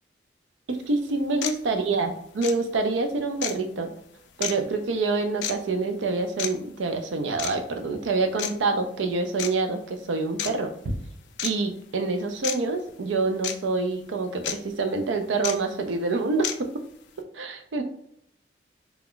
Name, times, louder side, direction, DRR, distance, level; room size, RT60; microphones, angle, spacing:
sound 1, 0.7-0.8 1.4-1.6 2.4-2.6 3.4-3.6 4.4-4.5 5.4-5.6 6.4-6.5 7.4-7.6 8.4-8.5 9.4-9.5 10.4-10.5 11.4-11.5 12.4-12.6 13.4-13.5 14.4-14.6 15.4-15.5 16.4-16.6, left 9 dB, 65° left, 0.3 m, -29 dB
voice 1, 0.7-3.9 4.4-10.9 11.4-16.7 17.3-17.8, right 3 dB, 85° right, 6 dB, 0.4 m, -26 dB
2.3 x 2.1 x 3.6 m, 0.70 s
head